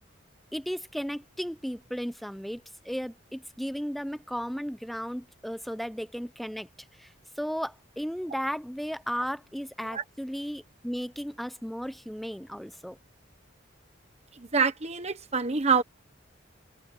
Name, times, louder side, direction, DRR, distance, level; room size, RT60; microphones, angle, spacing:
voice 1, 0.5-6.7 7.0-13.0, equal, ahead, 0.7 m, -35 dB
voice 2, 14.3-15.8, right 5 dB, 35° right, 1.2 m, -26 dB
head